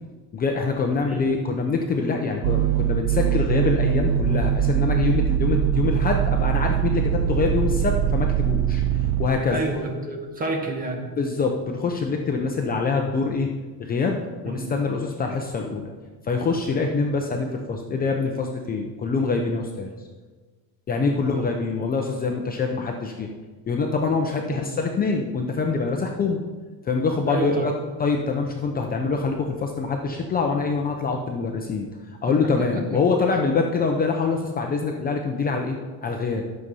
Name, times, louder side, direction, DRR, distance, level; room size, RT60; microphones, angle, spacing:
voice 1, 0.3-9.6 11.2-13.5 13.8-15.9 16.2-19.9 20.9-23.3 23.7-26.4 26.8-27.7 28.0-36.5, left 4 dB, 25° left, 2 dB, 0.7 m, -25 dB
sound 1, 2.4-9.3, right 10 dB, 60° right, 0.6 m, -22 dB
voice 2, 9.5-11.0 12.5-12.7 14.4-14.7 21.0-21.2 24.5-24.6 27.3-27.7 32.3-33.0, right 2 dB, 25° right, 1 dB, 1.8 m, -29 dB
12.5 x 6.8 x 5.5 m, 1.4 s
cardioid pair, 170°, 37 cm